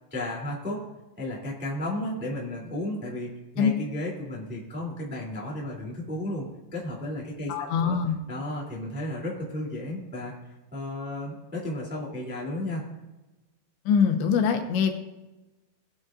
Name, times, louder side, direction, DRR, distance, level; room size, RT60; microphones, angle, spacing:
voice 1, 0.1-0.8 1.2-8.0 8.3-12.8, left 1 dB, 5° right, -3 dB, 1.4 m, -33 dB
voice 2, 7.5-8.2 13.9-14.9, left 6 dB, 80° left, 5 dB, 3.3 m, -23 dB
19.5 x 9.3 x 2.5 m, 1.1 s
omnidirectional pair, 5.1 m